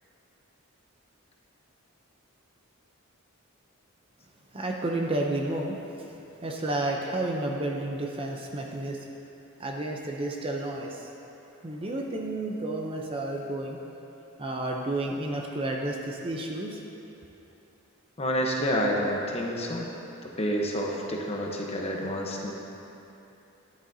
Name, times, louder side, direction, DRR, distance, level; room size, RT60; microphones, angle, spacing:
voice 1, 4.5-5.8 6.4-9.0 9.6-11.0 11.6-13.8 14.4-16.8, right 2 dB, 25° right, 0 dB, 0.6 m, -31 dB
voice 2, 18.2-19.9 20.4-22.5, equal, 30° left, -1 dB, 1.0 m, -28 dB
12.5 x 10.0 x 2.7 m, 3.0 s
head